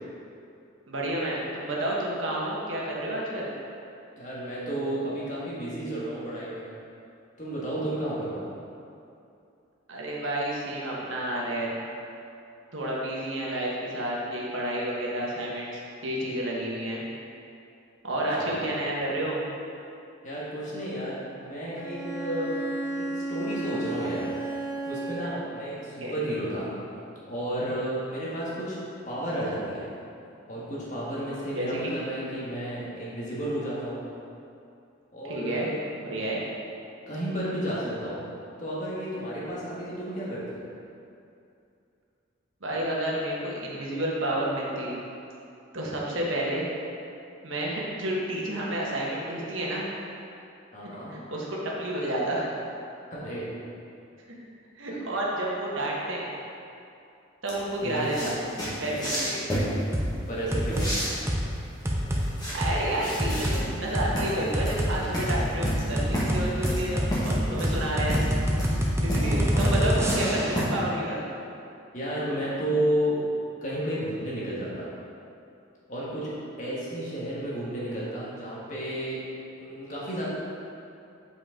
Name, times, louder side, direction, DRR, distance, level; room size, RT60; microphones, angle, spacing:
voice 1, 0.9-3.5 9.9-11.7 12.7-17.0 18.0-19.4 26.0-26.1 31.5-31.9 35.2-35.7 36.0-36.4 42.6-44.9 45.7-46.7 47.4-49.9 50.8-52.5 54.7-56.3 57.4-58.3 58.8-59.4 62.5-68.2 69.0-71.2, right 1 dB, 80° right, -4 dB, 1.4 m, -30 dB
voice 2, 4.2-6.7 7.4-8.4 18.1-18.7 20.2-22.6 23.0-24.3 24.9-26.7 27.3-28.8 29.0-29.9 30.5-34.0 35.1-35.9 37.1-38.2 38.6-40.6 50.7-51.1 53.0-53.5 54.9-55.0 57.8-58.1 60.3-60.9 69.1-70.1 71.9-73.2 73.6-74.9 75.9-79.3 79.6-80.3, right 1 dB, 40° left, -7 dB, 1.6 m, -32 dB
Bowed string instrument, 21.7-25.5, right 2 dB, 70° left, 1.0 m, -33 dB
sound 1, 57.5-70.6, equal, 20° left, 1.7 m, -32 dB
sound 2, 59.9-60.1 60.5-60.9 61.3-61.5 61.8-62.2 62.6-62.7 63.2-63.6 63.9-64.1 64.5-64.9 65.3-70.6, equal, 15° right, 0.6 m, -26 dB
7.7 x 5.2 x 3.8 m, 2.6 s
head